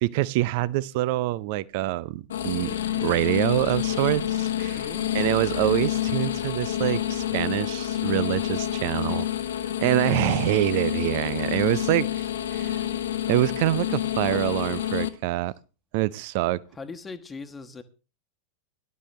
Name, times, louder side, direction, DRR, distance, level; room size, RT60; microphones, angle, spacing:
voice 1, 0.0-4.9 5.1-9.2 9.8-12.1 12.5-12.8 13.3-15.5 15.9-16.6, right 17 dB, 50° right, 21 dB, 0.6 m, -25 dB
sound 1, 2.3-15.1, left 11 dB, 65° left, 1.2 m, -28 dB
voice 2, 4.7-5.1 9.1-9.2 10.0-10.4 14.3-14.4 16.8-17.8, left 4 dB, 15° left, 7 dB, 1.3 m, -39 dB
18.0 x 11.5 x 3.2 m, 0.33 s
figure-of-eight pair, 90°, 0 cm